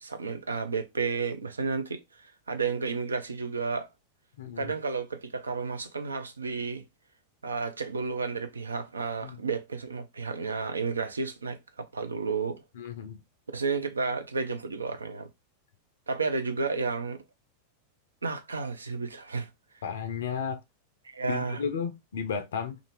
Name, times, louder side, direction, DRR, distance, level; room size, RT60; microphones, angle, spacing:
voice 1, 0.0-3.9 4.6-6.8 7.4-12.6 13.5-15.3 16.1-17.2 18.2-19.5 21.0-21.6, right 4 dB, 75° right, 0.4 m, -32 dB
voice 2, 4.4-4.7 9.2-9.4 12.8-13.2 19.8-20.6 21.3-22.8, left 7 dB, 60° left, 0.4 m, -33 dB
2.5 x 2.4 x 2.9 m
figure-of-eight pair, 90°, 0 cm